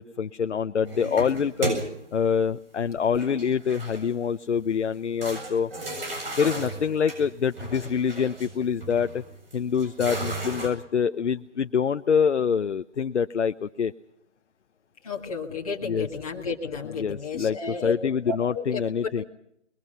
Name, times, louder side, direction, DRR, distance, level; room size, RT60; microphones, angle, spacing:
voice 1, 0.0-1.7 2.1-5.7 6.4-9.2 9.5-13.9 15.8-16.1 16.9-19.2, left 7 dB, 70° left, 10 dB, 0.8 m, -25 dB
sound 1, 0.8-2.2 3.1-4.2 4.6-4.7 5.2-10.7, right 2 dB, 50° right, 7.6 m, -34 dB
voice 2, 15.0-18.0 18.3-18.8 19.2-19.3, left 4 dB, 30° left, -1 dB, 2.0 m, -32 dB
27.5 x 21.5 x 5.5 m, 0.74 s
hypercardioid pair, 175°, 36 cm